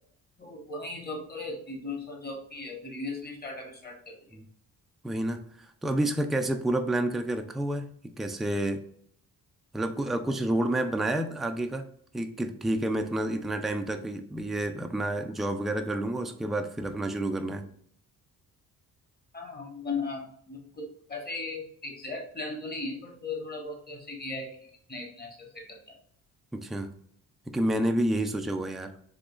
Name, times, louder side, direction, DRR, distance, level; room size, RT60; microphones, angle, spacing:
voice 1, 0.4-4.4 19.3-24.5 24.9-25.9, left 3 dB, 25° left, 1 dB, 1.3 m, -37 dB
voice 2, 5.0-5.4 5.8-8.8 9.7-11.9 12.1-17.7 26.5-26.9 27.5-28.9, right 1 dB, ahead, 6 dB, 0.3 m, -29 dB
3.8 x 2.7 x 2.4 m, 0.63 s
cardioid pair, 70°, 36 cm